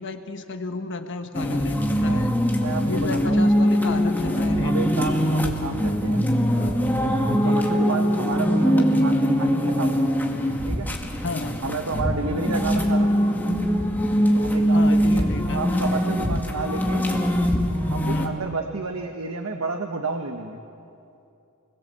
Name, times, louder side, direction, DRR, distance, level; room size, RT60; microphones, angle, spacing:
voice 1, 0.0-2.3 2.8-4.7 6.5-6.7 7.4-7.7 11.2-11.6 14.7-15.8 18.1-18.3, left 3 dB, 55° left, 6 dB, 1.4 m, -32 dB
sound 1, 1.3-18.3, equal, 10° left, 2.0 m, -22 dB
voice 2, 2.5-3.5 4.6-6.2 7.2-10.1 10.7-10.9 11.6-13.1 14.3-17.1 17.9-20.6, right 3 dB, 70° right, 4 dB, 1.4 m, -31 dB
28.5 x 21.0 x 7.7 m, 2.7 s
head